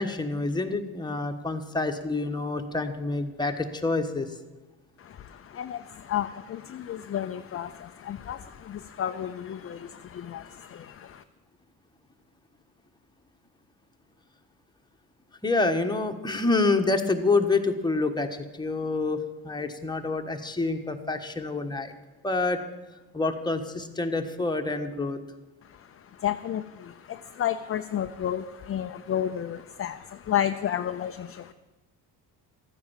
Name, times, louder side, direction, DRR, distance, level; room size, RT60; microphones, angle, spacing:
voice 1, 0.0-4.4 15.4-21.9 22.2-22.6 23.1-25.2, left 3 dB, 10° left, 5 dB, 1.3 m, -27 dB
voice 2, 5.0-11.2 25.6-31.5, left 10 dB, 35° left, 8 dB, 0.6 m, -32 dB
14.0 x 9.6 x 7.3 m, 1.2 s
cardioid pair, 100°, 39 cm